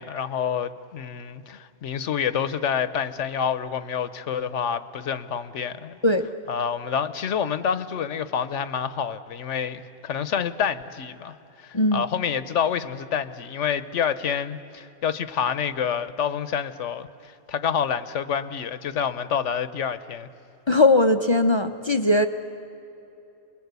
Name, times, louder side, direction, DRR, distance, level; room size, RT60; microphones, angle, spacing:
voice 1, 0.0-6.0 6.5-20.3, left 7 dB, 60° left, 13 dB, 1.1 m, -28 dB
voice 2, 20.7-22.3, left 2 dB, 35° left, 7 dB, 0.4 m, -19 dB
28.5 x 21.0 x 8.2 m, 2.9 s
omnidirectional pair, 1.5 m